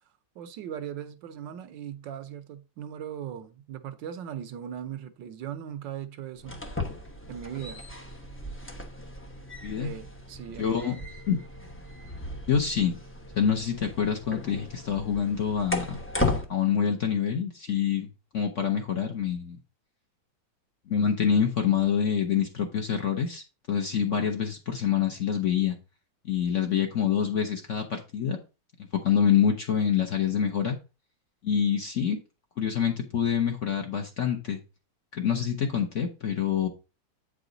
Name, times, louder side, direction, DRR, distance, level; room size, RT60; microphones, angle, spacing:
voice 1, 0.3-6.6 7.3-7.8 9.8-11.1, right 9 dB, 75° right, 1.4 m, -39 dB
sound 1, 6.4-16.5, left 2 dB, 15° left, 0.4 m, -35 dB
voice 2, 9.6-9.9 10.6-10.9 11.3-11.4 12.5-13.0 13.4-16.0 16.5-18.1 18.3-19.6 20.9-25.8 26.2-28.4 28.9-30.8 31.4-32.2 32.6-34.6 35.1-36.7, left 8 dB, 50° left, 1.0 m, -26 dB
8.2 x 5.0 x 3.9 m
omnidirectional pair, 2.1 m